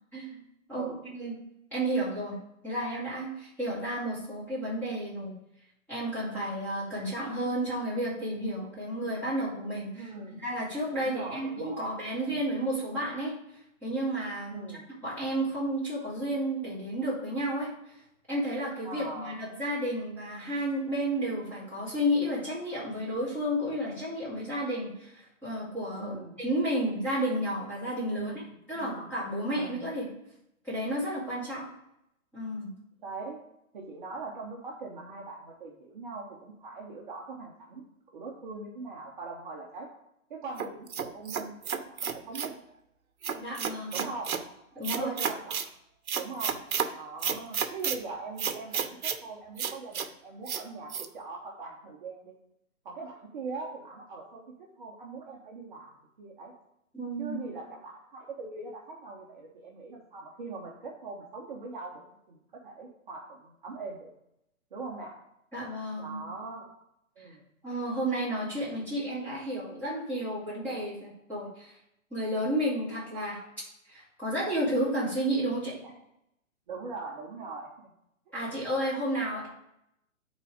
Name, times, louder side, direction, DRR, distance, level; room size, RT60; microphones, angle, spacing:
voice 1, 0.7-1.0 9.9-10.4 10.9-11.9 12.2-12.4 14.5-14.9 18.8-19.4 26.0-26.4 28.1-29.1 29.5-29.8 33.0-33.4 33.7-37.8 38.1-39.9 40.3-42.5 43.9-44.6 44.9-45.6 46.1-46.6 46.9-52.3 52.8-56.5 57.2-64.1 64.7-65.2 66.0-66.7 67.2-67.4 75.8-75.9 76.7-77.7 78.3-78.5, right 3 dB, 35° right, -2 dB, 1.2 m, -41 dB
voice 2, 1.7-2.3 2.6-5.3 5.9-13.3 13.8-14.6 15.0-17.7 18.3-28.3 28.7-30.0 30.6-31.7 32.3-32.7 43.3-44.0 44.7-45.1 56.9-57.4 65.5-66.2 67.6-71.7 72.1-73.4 73.9-75.8 78.3-79.5, right 1 dB, 5° left, -11 dB, 3.0 m, -32 dB
sound 1, 40.6-42.6 43.2-44.4 44.8-45.7 46.1-46.9 47.2-48.0 48.4-49.2 49.6-50.1 50.5-50.6 50.9-51.1, right 7 dB, 85° right, 1.0 m, -31 dB
9.5 x 4.1 x 5.0 m, 0.79 s
hypercardioid pair, 170°, 41 cm